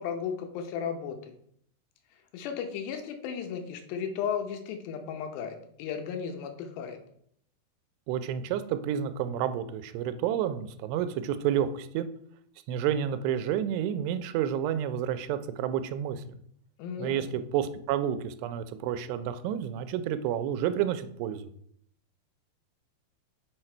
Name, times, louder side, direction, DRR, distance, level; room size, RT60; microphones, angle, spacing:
voice 1, 0.0-1.3 2.3-7.0 16.8-17.3, left 7 dB, 90° left, 5 dB, 3.0 m, -35 dB
voice 2, 8.1-12.1 12.7-16.2 17.0-21.5, right 9 dB, 90° right, 11 dB, 2.7 m, -30 dB
6.4 x 4.8 x 4.4 m, 0.67 s
omnidirectional pair, 4.8 m